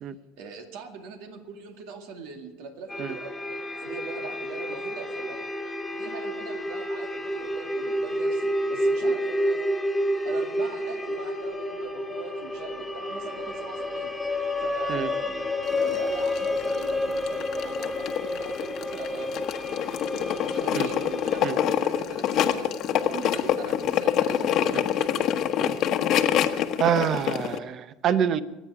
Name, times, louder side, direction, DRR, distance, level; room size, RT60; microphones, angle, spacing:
voice 1, 0.4-5.5 5.9-9.6 10.2-14.1 14.6-15.4 15.7-19.3 20.2-25.3 25.6-25.8, right 5 dB, 75° right, 5 dB, 2.2 m, -41 dB
sound 1, 2.9-21.5, left 1 dB, 5° left, 1.9 m, -30 dB
sound 2, 15.7-27.6, left 9 dB, 50° left, 1.1 m, -26 dB
voice 2, 26.8-28.4, right 8 dB, 45° right, 14 dB, 0.8 m, -26 dB
25.0 x 9.3 x 4.8 m, 1.0 s
cardioid pair, 130°, 0 cm